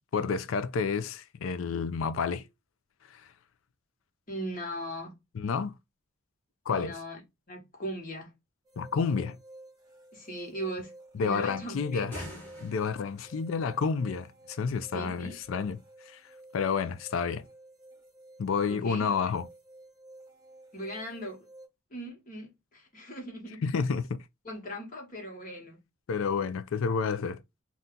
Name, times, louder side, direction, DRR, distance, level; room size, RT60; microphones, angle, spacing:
voice 1, 0.1-2.5 3.1-3.2 5.3-5.7 6.7-7.0 8.8-9.4 11.1-12.1 12.6-15.8 16.1-16.2 16.5-17.4 18.4-19.5 23.6-24.2 26.1-27.4, left 5 dB, 75° left, 0.4 m, -30 dB
voice 2, 4.3-5.1 6.7-7.2 7.5-8.3 10.1-12.3 14.9-15.4 18.7-19.1 20.7-21.4 21.9-23.7 24.4-25.8, right 1 dB, 40° left, 1.2 m, -39 dB
sound 1, 8.7-21.7, right 1 dB, 20° right, 0.8 m, -53 dB
sound 2, 11.9-13.2, equal, 10° left, 1.0 m, -44 dB
2.6 x 2.3 x 3.6 m
head